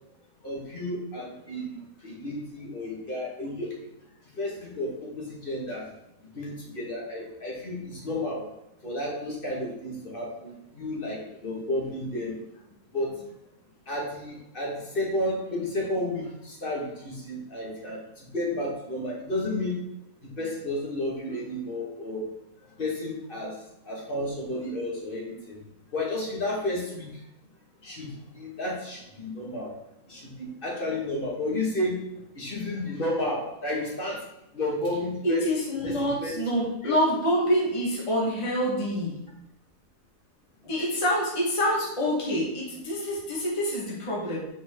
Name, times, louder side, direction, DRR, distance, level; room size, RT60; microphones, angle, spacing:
voice 1, 0.4-3.8 4.3-5.8 6.3-8.5 8.8-12.3 12.9-13.1 13.9-19.8 20.2-22.2 22.8-23.6 23.8-25.6 25.9-27.2 27.8-29.7 30.1-32.0 32.4-34.2 34.5-35.4 35.8-36.4 36.8-37.0, left 1 dB, 40° left, -3 dB, 1.9 m, -32 dB
voice 2, 35.2-39.2 40.6-44.5, equal, 20° left, -4 dB, 1.5 m, -26 dB
6.9 x 5.2 x 3.7 m, 0.83 s
omnidirectional pair, 1.5 m